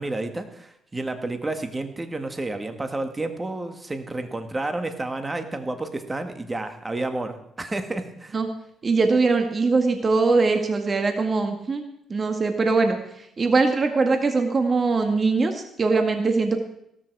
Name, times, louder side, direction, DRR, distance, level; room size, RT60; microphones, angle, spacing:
voice 1, 0.0-8.4, right 2 dB, 20° right, 7 dB, 2.0 m, -30 dB
voice 2, 8.8-11.8 12.1-16.6, right 3 dB, 35° right, 5 dB, 1.8 m, -22 dB
16.0 x 13.5 x 4.8 m, 0.76 s
cardioid pair, 90°, 0 cm